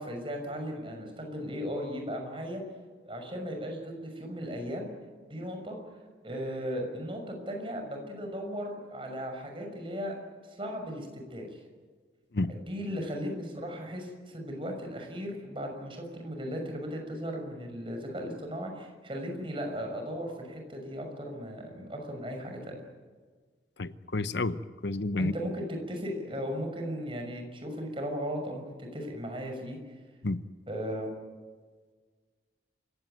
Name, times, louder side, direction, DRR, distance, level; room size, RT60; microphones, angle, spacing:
voice 1, 0.0-2.6 3.0-4.9 5.3-10.2 10.4-11.6 12.5-22.7 25.2-29.8 30.7-31.1, equal, 30° right, 3 dB, 6.2 m, -36 dB
voice 2, 23.8-25.3 30.2-30.4, left 2 dB, 80° left, 13 dB, 0.9 m, -30 dB
27.5 x 17.0 x 9.3 m, 1.5 s
head